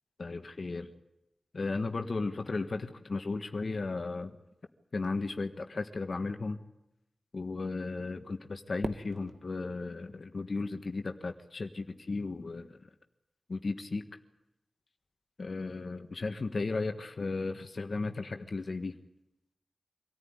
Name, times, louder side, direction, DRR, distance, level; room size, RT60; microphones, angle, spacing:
voice 1, 0.2-0.9 1.5-4.4 4.9-6.6 7.3-12.8 13.5-14.0 15.4-18.9, left 3 dB, 60° left, 6 dB, 1.5 m, -35 dB
Fireworks, 8.8-11.1, right 2 dB, 50° right, 1.4 m, -44 dB
25.0 x 14.5 x 9.8 m, 0.90 s
cardioid pair, 50°, 0 cm